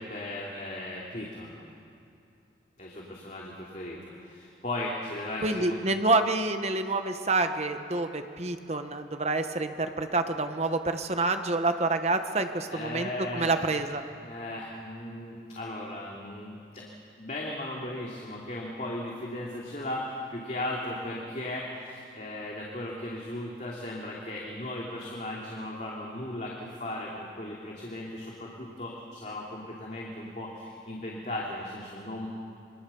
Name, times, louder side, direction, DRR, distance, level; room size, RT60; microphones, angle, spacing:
voice 1, 0.0-1.6 2.8-5.8 12.7-13.8 14.2-16.9 17.2-32.3, left 1 dB, 40° left, -3 dB, 2.9 m, -37 dB
voice 2, 5.4-14.0, right 3 dB, 35° right, 7 dB, 1.2 m, -28 dB
27.0 x 24.0 x 7.1 m, 2.6 s
head